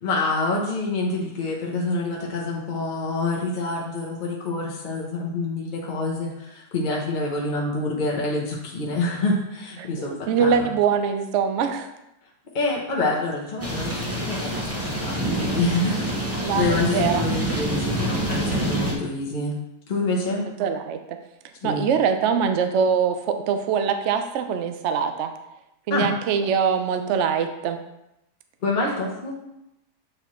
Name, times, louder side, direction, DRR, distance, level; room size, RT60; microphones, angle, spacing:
voice 1, 0.0-10.7 12.5-19.6 19.9-20.5 21.6-21.9 25.9-26.1 28.6-29.3, left 2 dB, 45° left, -2 dB, 0.7 m, -27 dB
voice 2, 9.8-11.9 16.4-17.6 20.6-21.2 21.6-25.3 25.9-27.8, right 7 dB, 80° right, 7 dB, 0.6 m, -23 dB
sound 1, 13.6-18.9, right 1 dB, 20° right, 0.4 m, -26 dB
7.7 x 4.2 x 3.1 m, 0.87 s
omnidirectional pair, 1.9 m